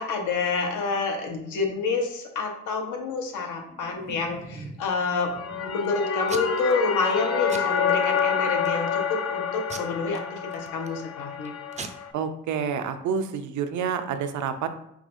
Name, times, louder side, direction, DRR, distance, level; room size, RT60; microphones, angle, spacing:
voice 1, 0.0-5.3 5.6-11.5, left 4 dB, 80° left, 2 dB, 1.0 m, -28 dB
Packing tape duct tape / Tearing, 3.5-4.9 5.4-5.9 6.3-6.7 7.0-7.2 7.5-8.2 8.7-9.0 9.7-11.0 11.4-11.5 11.7-11.9, right 4 dB, 25° right, 0.4 m, -40 dB
sound 1, 5.2-12.1, left 7 dB, 55° left, 0.6 m, -28 dB
voice 2, 12.1-14.7, right 7 dB, 75° right, 8 dB, 0.5 m, -28 dB
4.8 x 3.3 x 2.6 m, 0.77 s
cardioid pair, 90°, 30 cm